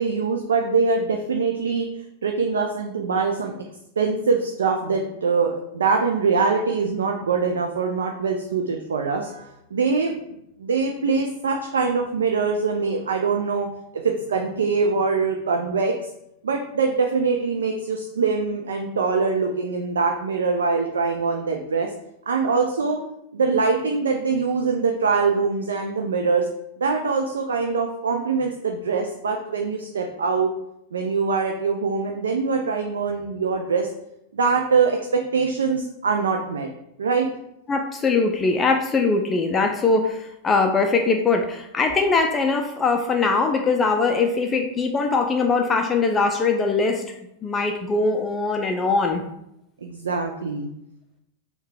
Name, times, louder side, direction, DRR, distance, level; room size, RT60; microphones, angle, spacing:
voice 1, 0.0-1.9 2.2-3.5 4.0-10.2 10.6-13.7 14.0-15.9 16.4-21.9 22.3-23.0 23.3-26.4 26.8-30.5 30.9-33.9 34.3-36.7 37.0-37.3 49.8-50.7, right 4 dB, 70° right, 3 dB, 0.4 m, -23 dB
voice 2, 37.7-40.2 40.4-47.0 47.4-49.2, left 4 dB, 20° left, 3 dB, 0.4 m, -21 dB
4.5 x 2.3 x 4.8 m, 0.81 s
figure-of-eight pair, 90°, 0 cm